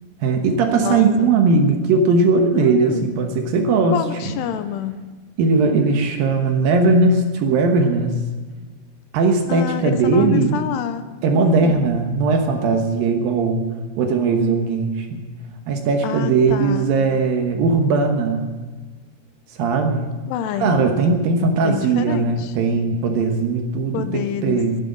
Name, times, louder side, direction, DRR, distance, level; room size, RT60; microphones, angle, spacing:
voice 1, 0.2-4.4 5.4-8.2 9.1-10.6 11.2-13.7 14.0-15.2 15.7-18.5 19.6-20.1 20.6-24.8, right 4 dB, 65° right, 4 dB, 2.6 m, -19 dB
voice 2, 0.7-1.3 2.5-3.1 3.9-5.0 9.5-11.1 11.3-11.8 16.0-16.9 20.3-20.9 21.6-22.5 23.9-24.7, left 10 dB, 85° left, 10 dB, 2.8 m, -27 dB
12.0 x 11.0 x 8.4 m, 1.4 s
omnidirectional pair, 5.0 m